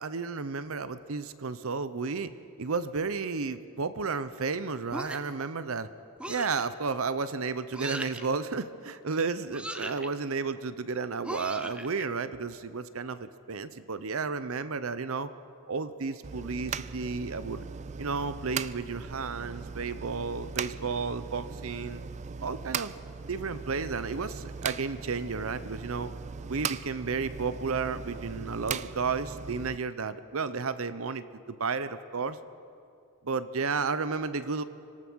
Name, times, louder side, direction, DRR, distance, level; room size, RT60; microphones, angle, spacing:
voice 1, 0.0-2.3 2.6-5.9 6.2-15.3 15.7-17.6 18.0-22.0 22.4-22.9 23.3-26.1 26.5-32.4 33.2-34.6, right 4 dB, 70° right, 13 dB, 0.7 m, -32 dB
sound 1, 4.9-5.4 6.2-6.7 7.7-8.3 9.5-10.1 11.2-12.0, right 1 dB, 5° right, 0.8 m, -38 dB
sound 2, 16.2-29.8, right 6 dB, 30° right, 0.4 m, -39 dB
25.5 x 18.0 x 6.2 m, 2.5 s
head